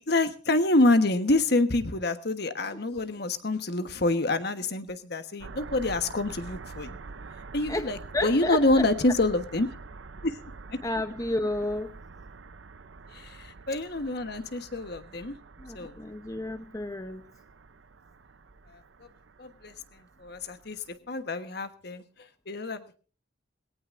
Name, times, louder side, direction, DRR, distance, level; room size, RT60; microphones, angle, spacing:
voice 1, 0.0-7.0 7.5-9.8 10.2-10.4 10.7-10.8 13.1-15.4 15.7-15.9 18.7-18.8 19.4-22.0 22.5-23.0, left 2 dB, 55° left, 9 dB, 1.3 m, -27 dB
sound 1, 5.4-21.0, right 4 dB, 75° right, 0.7 m, -46 dB
voice 2, 8.1-8.8 10.8-11.9 15.6-17.2, left 1 dB, 15° left, 8 dB, 0.8 m, -31 dB
20.0 x 17.5 x 2.6 m, 0.38 s
head